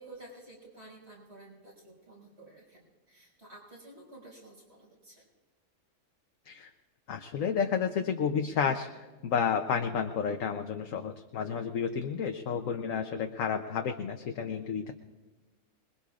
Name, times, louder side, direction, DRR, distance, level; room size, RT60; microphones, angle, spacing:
voice 1, 0.0-5.3, right 2 dB, 45° right, -2 dB, 6.3 m, -52 dB
voice 2, 7.1-8.9 9.2-14.9, left 7 dB, 65° left, 5 dB, 1.1 m, -31 dB
26.0 x 21.5 x 2.4 m, 1.2 s
omnidirectional pair, 1.6 m